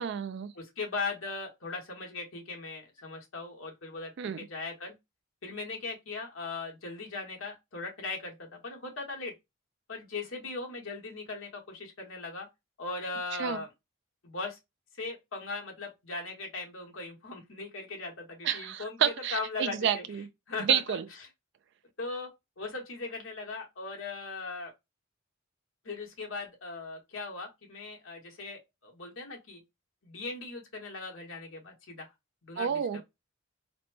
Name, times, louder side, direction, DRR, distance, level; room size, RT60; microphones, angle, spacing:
voice 1, 0.0-0.5 4.2-4.4 13.4-13.6 18.4-20.3 20.6-21.0 32.6-33.0, right 8 dB, 60° right, 0.3 m, -30 dB
voice 2, 0.5-4.1 4.4-4.9 5.4-9.3 9.9-12.5 12.8-13.7 14.2-14.6 15.0-20.0 20.5-21.0 22.0-22.3 22.6-24.7 25.8-29.6 30.0-32.1 32.4-32.8, left 3 dB, 75° left, 1.4 m, -39 dB
4.0 x 2.2 x 2.8 m
head